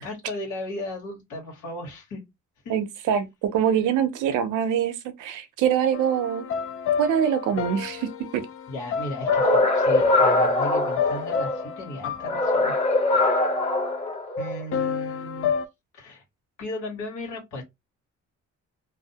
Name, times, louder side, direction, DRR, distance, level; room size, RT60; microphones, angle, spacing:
voice 1, 0.0-2.2 2.6-2.7 8.7-12.7 14.4-15.5 15.9-16.2 16.6-17.6, left 1 dB, 85° left, 1.3 m, -35 dB
voice 2, 2.7-6.5 7.0-8.5 9.4-9.7, right 8 dB, 85° right, 0.6 m, -24 dB
sound 1, 5.9-13.9 14.7-15.7, left 8 dB, 45° left, 0.4 m, -31 dB
sound 2, 9.2-11.6 12.2-14.6, left 2 dB, 20° left, 1.0 m, -22 dB
2.5 x 2.0 x 2.7 m
cardioid pair, 90°, 30 cm